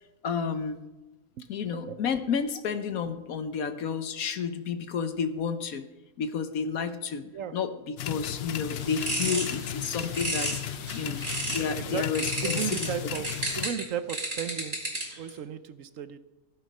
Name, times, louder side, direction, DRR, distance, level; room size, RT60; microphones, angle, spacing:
voice 1, 0.2-0.8 1.5-5.8 6.2-7.2 7.5-10.6 10.9-11.2 11.5-12.9, left 6 dB, 75° left, 9 dB, 1.4 m, -31 dB
sound 1, 8.0-13.7, left 10 dB, 60° left, 0.7 m, -35 dB
sound 2, 8.7-11.7 12.1-15.3, right 1 dB, 35° right, 3.3 m, -33 dB
voice 2, 11.8-16.2, right 8 dB, 65° right, 12 dB, 1.1 m, -36 dB
16.0 x 9.5 x 5.5 m, 1.1 s
omnidirectional pair, 1.5 m